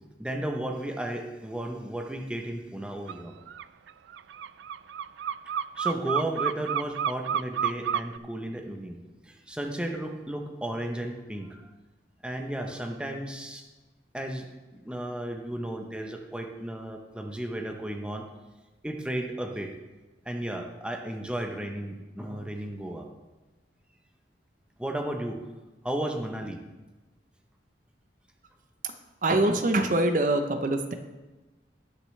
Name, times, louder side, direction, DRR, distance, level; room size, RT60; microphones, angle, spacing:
voice 1, 0.2-3.4 5.8-9.0 9.2-11.7 12.2-13.7 14.1-18.3 18.8-19.7 20.2-23.1 24.8-25.4 25.8-26.6, right 1 dB, 5° right, 2 dB, 0.8 m, -34 dB
sound 1, 3.1-3.2 3.5-8.2, right 8 dB, 80° right, 0.3 m, -30 dB
voice 2, 29.2-30.9, right 2 dB, 45° right, 7 dB, 0.7 m, -24 dB
19.0 x 6.6 x 3.2 m, 1.2 s
head